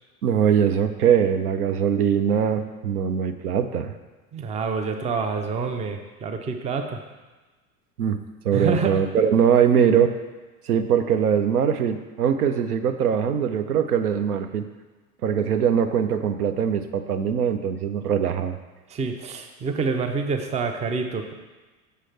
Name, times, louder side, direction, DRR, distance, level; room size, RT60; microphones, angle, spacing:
voice 1, 0.2-3.9 8.0-8.2 8.4-10.1 10.7-14.6 15.2-18.6, right 8 dB, 75° right, 9 dB, 0.6 m, -22 dB
voice 2, 4.3-7.0 8.5-9.0 18.9-21.3, right 4 dB, 15° right, 6 dB, 0.5 m, -27 dB
6.7 x 6.2 x 3.2 m, 1.2 s
figure-of-eight pair, 80°, 45 cm